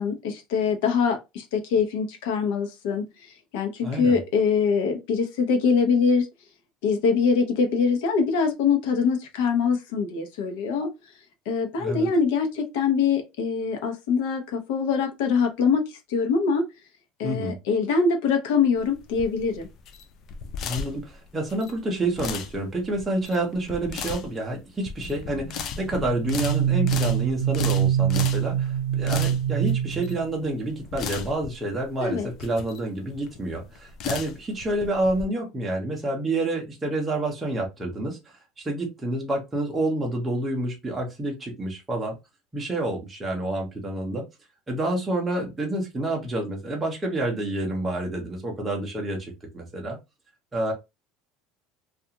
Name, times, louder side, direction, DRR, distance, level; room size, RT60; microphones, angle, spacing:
voice 1, 0.0-3.0 3.5-6.3 6.8-10.9 11.5-16.6 17.2-19.7 32.0-32.3, left 5 dB, 90° left, 0.7 m, -23 dB
voice 2, 3.8-4.2 11.8-12.1 17.2-17.6 20.6-38.2 38.6-42.1 42.5-44.2 44.7-50.0 50.5-50.7, right 1 dB, 10° right, 0.6 m, -28 dB
sound 1, 18.7-35.2, left 6 dB, 40° left, 0.3 m, -36 dB
sound 2, 25.0-30.6, right 10 dB, 60° right, 0.6 m, -25 dB
2.4 x 2.3 x 2.8 m
cardioid pair, 175°, 0 cm